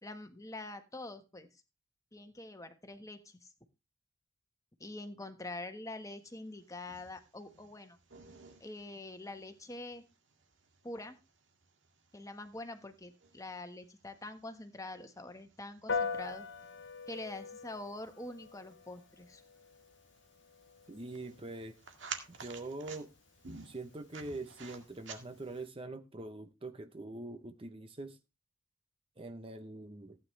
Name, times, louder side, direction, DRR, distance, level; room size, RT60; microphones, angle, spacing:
voice 1, 0.0-1.5 2.1-3.5 4.8-8.0 8.6-10.0 10.8-11.2 12.1-16.4 17.1-19.4, left 2 dB, 15° left, 1.4 m, -45 dB
sound 1, 6.3-25.7, right 5 dB, 70° right, 2.0 m, -53 dB
Piano, 15.9-25.6, left 4 dB, 65° left, 0.9 m, -44 dB
voice 2, 20.9-21.8 22.4-23.1 23.6-28.2 29.2-30.2, right 2 dB, 30° right, 0.8 m, -43 dB
15.5 x 9.2 x 3.3 m
head